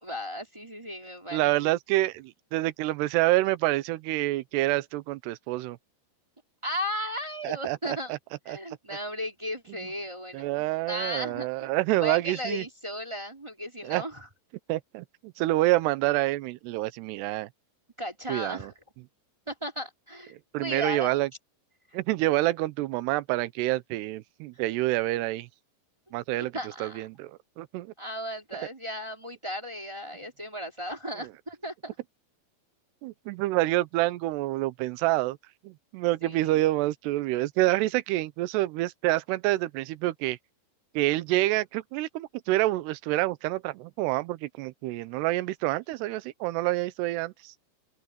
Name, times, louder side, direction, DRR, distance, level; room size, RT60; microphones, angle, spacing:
voice 1, 0.0-1.5 6.6-8.1 8.5-11.7 12.0-14.3 18.0-18.7 19.5-21.2 26.4-27.0 28.0-31.9 36.2-36.6, equal, 10° right, 1.6 m, -36 dB
voice 2, 1.3-5.8 7.4-8.2 8.5-8.6 10.3-12.6 13.8-14.0 14.7-17.5 18.3-18.7 20.5-21.3 21.9-25.5 26.1-26.5 26.8-27.9 31.2-31.3 33.0-35.4 35.6-40.4 40.9-47.5, right 17 dB, 80° right, 2.8 m, -27 dB
open air
omnidirectional pair, 5.0 m